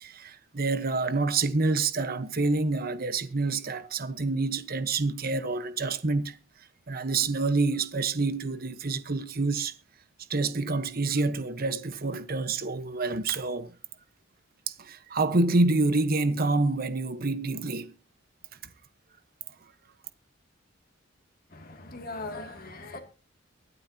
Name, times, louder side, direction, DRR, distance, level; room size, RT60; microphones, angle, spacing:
voice 1, 0.0-6.4 6.9-9.7 10.3-13.7 14.7-17.9, right 3 dB, 50° right, 1.1 m, -27 dB
voice 2, 21.5-23.0, left 2 dB, 45° left, 2.5 m, -39 dB
23.5 x 8.1 x 2.8 m
head